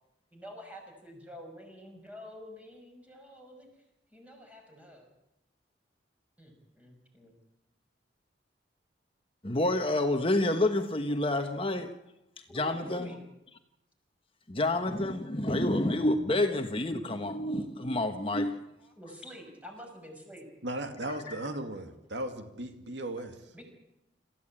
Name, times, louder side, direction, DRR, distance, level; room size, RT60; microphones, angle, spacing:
voice 1, 0.3-3.7 4.1-5.1 6.4-7.4 12.5-13.2 18.8-20.5 23.5-23.6, equal, 10° right, 5.8 m, -48 dB
voice 2, 9.4-12.0 12.4-13.2 14.5-18.7 21.3-21.4, left 1 dB, 30° left, 1.2 m, -29 dB
voice 3, 20.6-23.5, right 1 dB, 75° right, 2.4 m, -37 dB
27.5 x 15.5 x 8.8 m
head